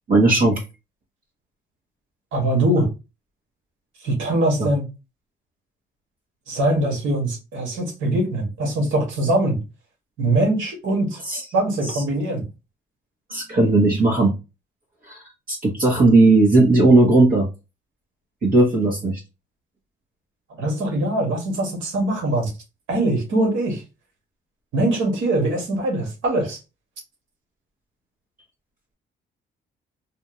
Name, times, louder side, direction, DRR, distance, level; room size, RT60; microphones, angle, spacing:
voice 1, 0.1-0.6 4.6-4.7 11.3-11.4 11.9-12.0 13.3-14.3 15.1-15.2 15.5-17.5 18.4-19.2, right 2 dB, 45° right, 1.4 m, -16 dB
voice 2, 2.3-2.9 4.0-4.8 6.5-9.6 10.2-11.2 11.5-12.4 20.5-22.5 22.9-23.8 24.7-26.6, right 1 dB, 80° right, 2.0 m, -22 dB
4.1 x 2.6 x 3.1 m
cardioid pair, 90°, 20 cm